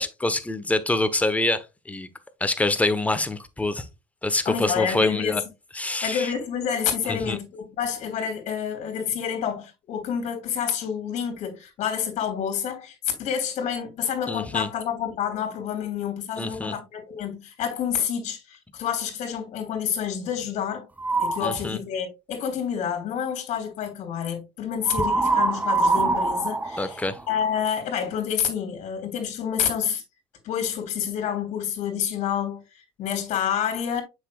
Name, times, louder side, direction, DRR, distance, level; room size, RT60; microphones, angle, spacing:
voice 1, 0.0-2.1 2.4-3.8 4.2-5.4 5.8-6.3 7.1-7.4 14.3-14.7 16.4-16.8 21.4-21.8 26.8-27.2, left 2 dB, 10° left, 1.0 m, -25 dB
voice 2, 4.4-5.4 6.0-20.9 21.2-30.0 30.4-34.0, left 8 dB, 55° left, 3.2 m, -28 dB
sound 1, 21.0-21.6 24.9-27.6, right 3 dB, 10° right, 0.8 m, -24 dB
7.3 x 6.3 x 2.4 m
supercardioid pair, 95°, 14 cm